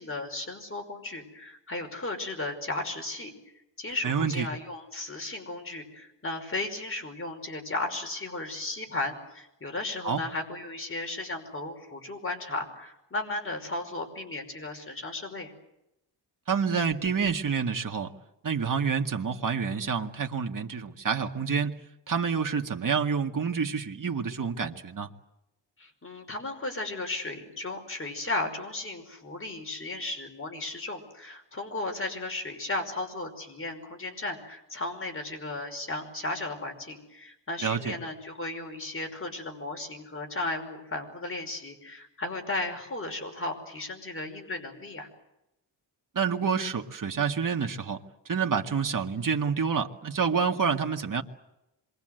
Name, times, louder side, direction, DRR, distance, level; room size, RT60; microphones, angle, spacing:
voice 1, 0.0-3.3 3.8-15.5 25.8-45.1, left 2 dB, 30° left, 3 dB, 5.4 m, -35 dB
voice 2, 4.0-4.5 10.0-10.2 16.5-18.1 18.4-21.8 22.1-25.1 37.6-38.0 46.2-48.0 48.3-51.2, right 6 dB, 45° right, 4 dB, 2.1 m, -28 dB
27.0 x 23.0 x 8.0 m, 0.89 s
wide cardioid pair, 105°, 43 cm